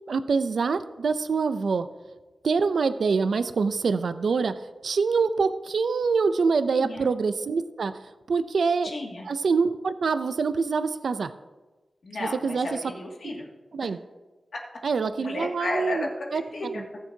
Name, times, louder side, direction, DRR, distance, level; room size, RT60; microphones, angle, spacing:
voice 1, 0.1-1.9 2.4-8.0 8.3-9.0 9.2-11.3 12.4-12.7 13.7-14.0 14.8-16.4, right 5 dB, 75° right, 12 dB, 0.4 m, -25 dB
voice 2, 6.7-7.1 8.8-9.3 12.0-13.5 13.8-13.9 14.5-14.6 15.2-17.0, left 2 dB, 70° left, -1 dB, 2.1 m, -33 dB
20.0 x 7.2 x 2.8 m, 1.2 s
wide cardioid pair, 135°, 0 cm